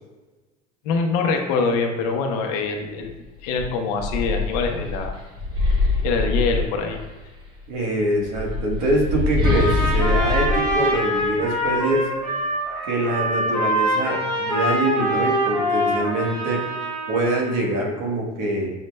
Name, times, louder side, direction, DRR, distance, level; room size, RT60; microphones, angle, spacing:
voice 1, 0.8-3.1 3.4-5.1 6.0-7.0, left 4 dB, 65° left, 4 dB, 0.6 m, -24 dB
sound 1, 3.0-3.2 3.6-7.2 8.1-11.8, left 3 dB, 25° right, 0.5 m, -24 dB
voice 2, 7.7-12.1 12.8-16.6 17.1-18.7, right 1 dB, 85° right, -1 dB, 1.1 m, -24 dB
Trumpet, 9.4-17.5, equal, 5° left, 0.9 m, -24 dB
6.3 x 2.1 x 3.2 m, 1.2 s
cardioid pair, 175°, 20 cm